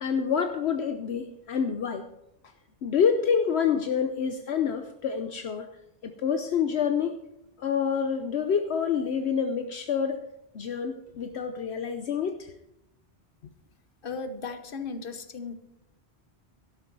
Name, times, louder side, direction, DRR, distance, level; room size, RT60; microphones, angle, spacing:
voice 1, 0.0-2.1 2.8-5.7 6.0-7.2 7.6-10.2 10.5-12.5, left 7 dB, 70° left, 7 dB, 1.0 m, -27 dB
voice 2, 14.0-15.5, left 4 dB, 55° left, 9 dB, 1.3 m, -36 dB
12.5 x 11.5 x 4.7 m, 0.87 s
omnidirectional pair, 1.1 m